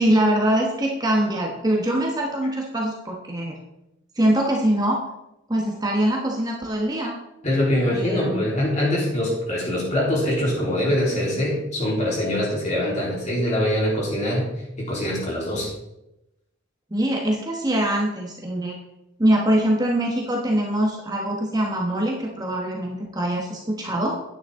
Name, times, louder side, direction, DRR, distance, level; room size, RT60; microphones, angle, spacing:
voice 1, 0.0-3.6 4.2-5.0 5.5-7.2 7.9-8.4 16.9-18.7 19.2-24.2, right 1 dB, 20° right, -1 dB, 1.3 m, -23 dB
voice 2, 7.4-14.5 14.8-15.7, left 1 dB, 35° left, -4 dB, 3.6 m, -23 dB
9.4 x 9.3 x 3.7 m, 0.90 s
head